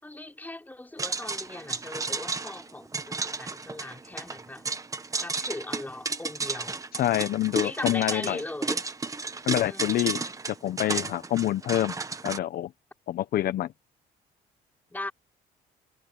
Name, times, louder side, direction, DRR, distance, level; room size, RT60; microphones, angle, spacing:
voice 1, 0.0-4.6 5.2-6.8 7.6-8.8 9.7-10.4 14.9-15.1, left 2 dB, 10° left, 5.6 m, -39 dB
sound 1, 1.0-12.4, right 4 dB, 20° right, 1.3 m, -33 dB
voice 2, 6.9-8.4 9.5-10.2 10.6-11.9 12.2-12.7 13.1-13.7, left 13 dB, 65° left, 0.8 m, -26 dB
cardioid pair, 110°, 17 cm